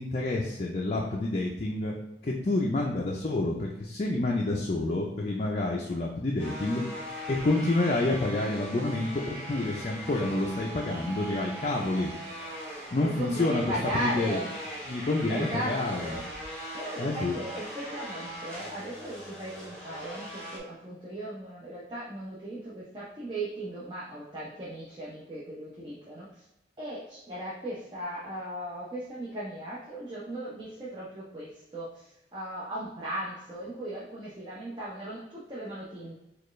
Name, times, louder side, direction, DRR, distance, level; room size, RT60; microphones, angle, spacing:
voice 1, 0.0-1.9 2.2-6.8 7.3-12.1 12.9-13.6 14.0-14.4 14.9-16.2 17.0-17.4, left 2 dB, 40° left, -2 dB, 0.4 m, -28 dB
sound 1, 6.4-20.6, equal, 5° left, 1.0 m, -40 dB
voice 2, 13.0-14.5 15.3-15.7 16.0-16.2 16.7-26.3 26.8-36.1, right 1 dB, 25° right, -7 dB, 0.6 m, -37 dB
4.2 x 2.4 x 3.1 m, 0.91 s
head